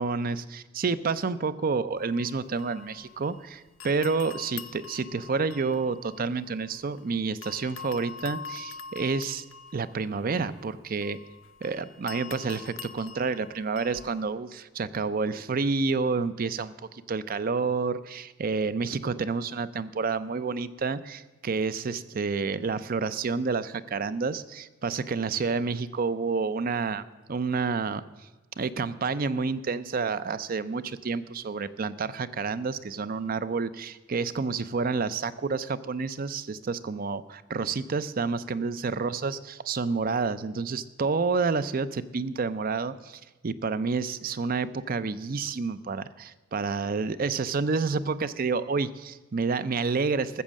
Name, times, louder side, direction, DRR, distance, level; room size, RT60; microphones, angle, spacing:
voice 1, 0.0-9.4 9.7-11.2 11.6-27.0 27.3-28.0 28.6-50.4, right 4 dB, 45° right, 15 dB, 0.5 m, -29 dB
sound 1, 2.0-3.5 3.8-7.0 7.4-14.2, left 5 dB, 80° left, 0.7 m, -44 dB
14.0 x 7.3 x 7.4 m, 1.2 s
head